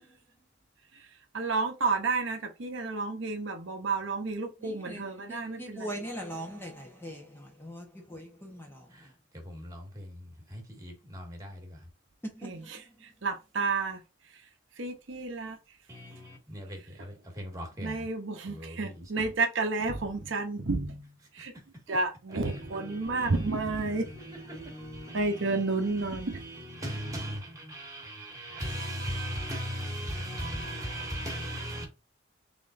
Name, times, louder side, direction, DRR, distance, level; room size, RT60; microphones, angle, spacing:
voice 1, 1.3-6.1 12.4-12.8 13.2-14.0 14.8-15.6 17.8-21.5 21.9-24.1 25.1-26.4, right 3 dB, 65° right, 0.8 m, -31 dB
voice 2, 4.6-8.8, equal, 10° left, 0.9 m, -41 dB
voice 3, 8.9-11.9 15.9-18.1 18.5-19.3 21.4-21.5 21.9-22.0 22.3-31.8, equal, 15° right, 1.6 m, -39 dB
3.8 x 3.8 x 2.5 m
head